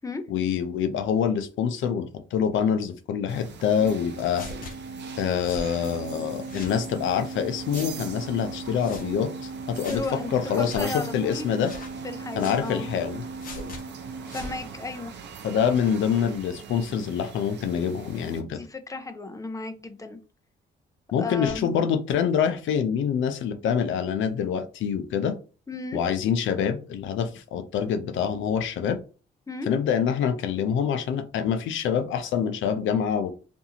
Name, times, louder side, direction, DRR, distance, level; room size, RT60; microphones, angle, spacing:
voice 1, 0.3-4.5 5.2-10.0 10.3-11.7 12.4-13.2 15.4-18.6 21.1-25.4 25.9-29.0 29.7-33.3, left 7 dB, 75° left, 0.5 m, -26 dB
sound 1, 3.3-18.4, right 6 dB, 65° right, 0.6 m, -42 dB
Organ, 3.8-15.0, right 4 dB, 90° right, 0.9 m, -39 dB
sound 2, 4.3-4.7 5.4-5.7 6.4-6.8 7.7-7.9 8.7-9.1 9.8-10.1 10.6-10.8 11.6-11.9 12.4-12.6 13.4-13.8 14.3-14.6, left 2 dB, 45° left, 0.9 m, -40 dB
voice 2, 9.9-10.3 10.6-11.5 12.0-12.9 14.3-15.1 18.4-20.2 21.2-21.7 25.7-26.0 29.5-29.7, left 3 dB, 15° left, 0.5 m, -34 dB
2.6 x 2.4 x 2.8 m
cardioid pair, 90°, 20 cm